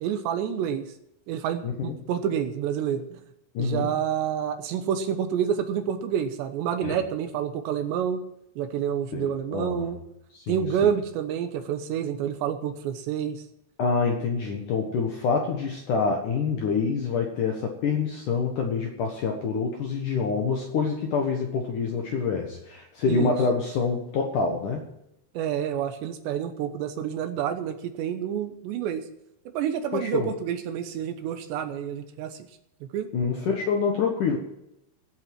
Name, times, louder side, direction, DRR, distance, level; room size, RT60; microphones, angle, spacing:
voice 1, 0.0-0.8 1.3-3.0 3.6-8.2 8.6-10.0 10.5-13.4 23.1-23.3 25.3-29.0 29.5-32.4 32.9-33.1, right 9 dB, 75° right, 8 dB, 3.0 m, -28 dB
voice 2, 1.6-2.0 3.5-3.9 6.8-7.0 9.1-9.9 10.3-10.9 13.8-24.8 29.9-30.3 33.1-34.4, left 5 dB, 65° left, 1 dB, 2.1 m, -26 dB
17.5 x 8.2 x 6.0 m, 0.82 s
omnidirectional pair, 5.5 m